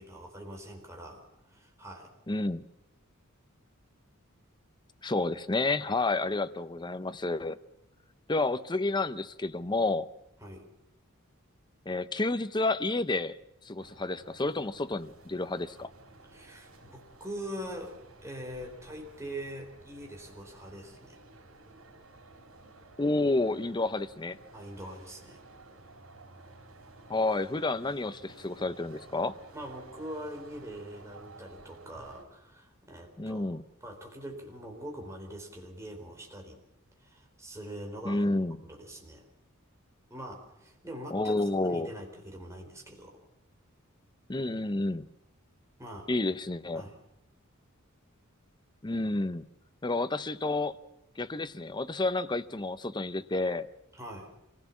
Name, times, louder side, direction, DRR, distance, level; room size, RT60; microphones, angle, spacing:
voice 1, 0.0-2.1 10.4-10.7 16.2-21.2 24.5-25.4 29.5-33.5 33.8-36.6 37.0-38.2 38.6-39.2 40.1-43.2 45.8-46.1 46.7-47.0 53.9-54.3, right 1 dB, 15° right, 1 dB, 4.3 m, -43 dB
voice 2, 2.3-2.6 5.0-7.6 8.3-10.1 11.9-13.4 13.6-15.9 23.0-24.4 27.1-29.3 33.2-33.6 38.0-38.6 41.1-41.9 44.3-45.0 46.1-46.8 48.8-49.4 49.8-50.8 51.2-53.7, left 2 dB, 20° left, 12 dB, 0.7 m, -30 dB
sound 1, 13.8-32.3, right 2 dB, 85° right, 3.7 m, -54 dB
25.5 x 16.5 x 7.3 m, 0.88 s
head